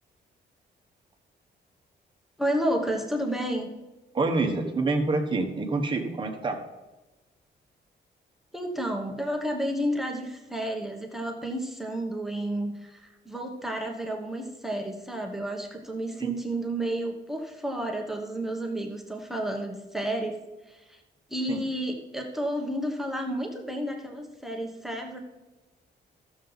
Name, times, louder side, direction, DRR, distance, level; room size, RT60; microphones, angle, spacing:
voice 1, 2.4-3.7 8.5-20.4 20.7-21.0 21.3-25.2, right 1 dB, ahead, 2 dB, 1.1 m, -31 dB
voice 2, 4.1-6.6 16.2-16.3 21.5-21.6, right 3 dB, 25° right, 3 dB, 1.1 m, -27 dB
14.5 x 7.0 x 3.9 m, 1.1 s
wide cardioid pair, 170°, 19 cm